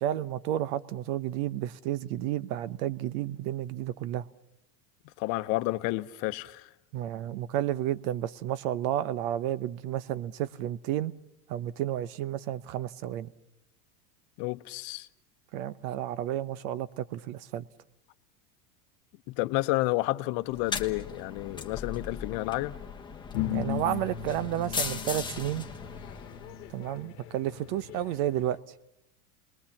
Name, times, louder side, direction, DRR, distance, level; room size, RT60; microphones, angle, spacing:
voice 1, 0.0-4.2 6.9-11.1 11.5-13.3 15.5-17.6 23.5-25.7 26.7-28.6, right 12 dB, 65° right, 1.0 m, -31 dB
voice 2, 5.2-6.7 14.4-15.1 19.3-22.7, left 19 dB, 55° left, 0.9 m, -30 dB
sound 1, 20.5-26.9, left 5 dB, 10° left, 1.3 m, -38 dB
sound 2, 23.3-28.6, left 10 dB, 80° left, 1.2 m, -37 dB
28.0 x 21.0 x 7.2 m
supercardioid pair, 125°, 45 cm